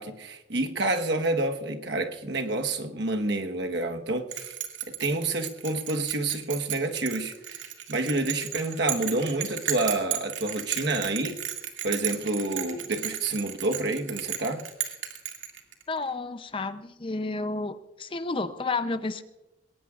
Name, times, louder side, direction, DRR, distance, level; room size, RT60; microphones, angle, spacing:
voice 1, 0.0-4.5 4.9-7.6 7.9-11.4 11.8-14.7, right 2 dB, 60° right, 4 dB, 1.2 m, -28 dB
Bell, 4.3-16.0, right 11 dB, 90° right, 2.1 m, -34 dB
voice 2, 15.9-19.2, left 3 dB, 25° left, 11 dB, 0.5 m, -31 dB
21.0 x 18.5 x 2.4 m, 1.0 s
head